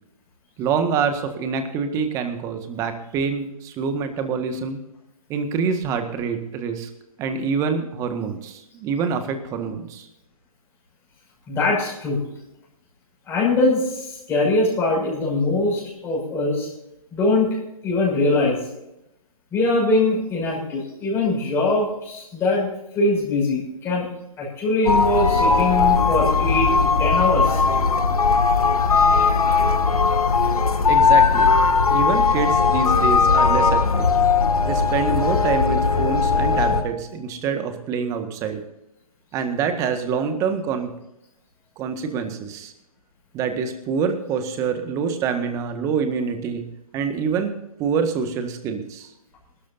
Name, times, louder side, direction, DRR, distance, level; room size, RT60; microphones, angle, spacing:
voice 1, 0.6-4.8 5.3-6.9 7.2-10.1 30.9-31.5 31.9-34.1 34.6-38.6 39.3-40.9 41.8-42.7 43.3-46.6 46.9-47.5 47.8-49.1, right 6 dB, 15° right, 7 dB, 1.6 m, -26 dB
voice 2, 11.5-12.2 13.3-16.7 17.1-17.5 17.8-18.6 19.5-22.7 22.9-24.1 24.4-27.6, left 2 dB, 15° left, -3 dB, 6.1 m, -22 dB
sound 1, 24.9-36.8, left 4 dB, 80° left, 2.1 m, -18 dB
22.5 x 13.0 x 2.7 m, 0.87 s
hypercardioid pair, 145°, 19 cm